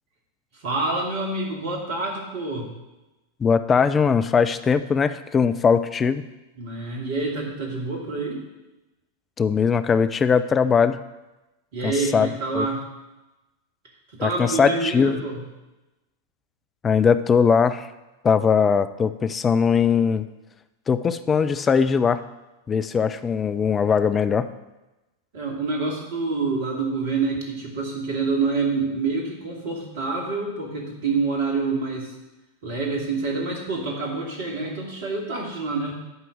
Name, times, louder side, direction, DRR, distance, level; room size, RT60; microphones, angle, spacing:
voice 1, 0.5-2.7 6.6-8.4 11.7-12.8 14.1-15.4 25.3-32.1 32.6-35.9, right 3 dB, 55° right, -1 dB, 2.6 m, -27 dB
voice 2, 3.4-6.2 9.4-11.0 11.8-12.3 12.5-12.7 14.2-15.2 16.8-17.9 18.2-20.3 20.9-22.2 22.7-24.5, left 6 dB, 20° left, 12 dB, 0.5 m, -20 dB
11.0 x 4.6 x 7.8 m, 1.0 s
figure-of-eight pair, 90°, 0 cm